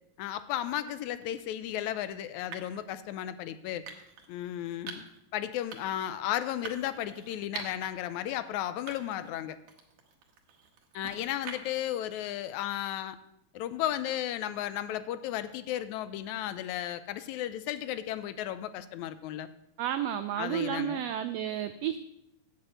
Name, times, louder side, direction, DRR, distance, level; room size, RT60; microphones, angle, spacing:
voice 1, 0.2-3.9 4.3-5.1 5.3-9.6 10.9-13.2 13.5-19.5 20.4-21.0, left 12 dB, 80° left, 13 dB, 1.9 m, -34 dB
sound 1, 1.2-1.4 2.5-2.8 3.9-4.3 4.9-5.2 5.7-6.1 6.6-7.9 8.3-8.4 8.9-9.3 9.7-11.9, right 6 dB, 70° right, 2.4 m, -45 dB
voice 2, 19.8-22.0, right 10 dB, 90° right, 10 dB, 1.4 m, -31 dB
9.7 x 5.9 x 7.9 m, 0.80 s
omnidirectional pair, 3.4 m